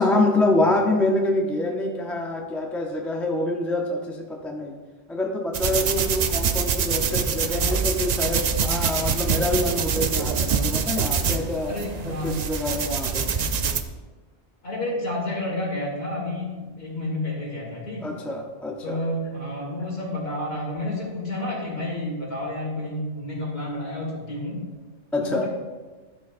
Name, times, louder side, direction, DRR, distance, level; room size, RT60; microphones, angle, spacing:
voice 1, 0.0-4.8 5.1-11.7 12.0-13.3 18.0-19.0 25.1-25.5, left 2 dB, ahead, 1 dB, 0.5 m, -26 dB
sound 1, 5.5-13.8, right 6 dB, 60° right, 0.4 m, -25 dB
voice 2, 11.7-12.3 14.6-18.1 18.8-24.6 25.2-25.5, left 1 dB, 60° left, -3 dB, 2.4 m, -30 dB
13.0 x 5.2 x 2.5 m, 1.3 s
omnidirectional pair, 1.2 m